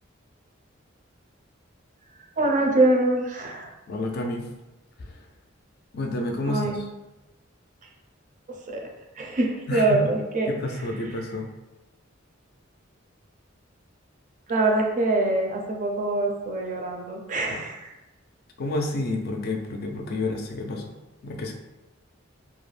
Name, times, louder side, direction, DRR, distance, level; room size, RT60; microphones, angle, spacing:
voice 1, 2.4-3.7 6.5-6.8 8.7-8.9 9.2-10.5 14.5-17.9, right 2 dB, 40° right, 1 dB, 0.4 m, -24 dB
voice 2, 3.9-4.5 5.0-5.2 5.9-6.8 9.7-10.1 10.5-11.5 18.6-20.9 21.2-21.5, left 1 dB, 50° left, 3 dB, 0.4 m, -29 dB
2.3 x 2.0 x 3.2 m, 1.0 s
head